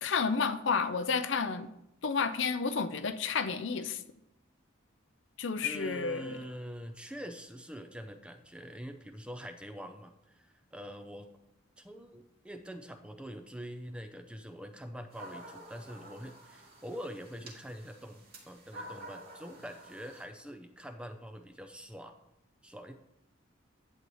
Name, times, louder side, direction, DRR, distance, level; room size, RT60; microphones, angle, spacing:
voice 1, 0.0-1.7 2.0-4.0 5.4-6.4, left 5 dB, 65° left, 10 dB, 0.6 m, -31 dB
voice 2, 5.6-11.3 11.8-22.2 22.6-23.0, equal, 5° right, 7 dB, 0.6 m, -44 dB
sound 1, 15.1-20.3, right 1 dB, 50° right, 2.5 m, -50 dB
10.5 x 8.3 x 3.1 m, 0.85 s
head